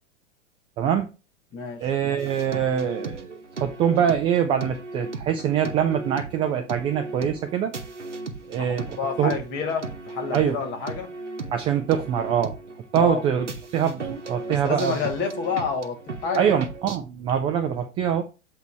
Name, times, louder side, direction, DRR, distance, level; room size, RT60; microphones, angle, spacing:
voice 1, 0.8-1.1 1.8-7.7 8.5-9.3 10.3-10.6 11.5-12.5 12.9-13.5 13.7-14.0 14.3-14.9 16.4-18.2, right 8 dB, 15° right, 0.4 m, -24 dB
voice 2, 1.5-1.9 8.6-11.1 13.0-13.3 14.6-16.4, left 5 dB, 30° left, 1.9 m, -29 dB
sound 1, 2.2-17.0, right 3 dB, 80° right, 1.0 m, -36 dB
8.0 x 2.8 x 4.6 m
figure-of-eight pair, 100°, 36 cm